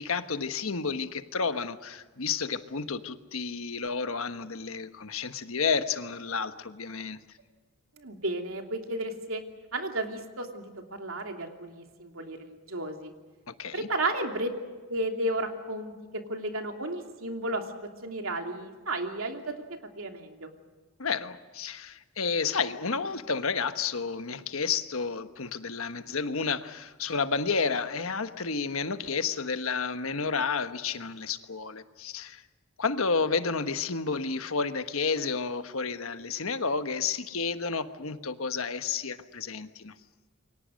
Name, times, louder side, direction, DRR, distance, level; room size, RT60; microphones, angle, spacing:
voice 1, 0.0-7.2 13.5-13.9 21.0-32.4 32.8-39.9, left 5 dB, 85° left, 10 dB, 1.3 m, -31 dB
voice 2, 8.0-9.4 9.7-13.1 13.7-14.5 14.9-20.5, right 1 dB, 80° right, 4 dB, 2.9 m, -33 dB
28.0 x 24.0 x 6.4 m, 1.4 s
head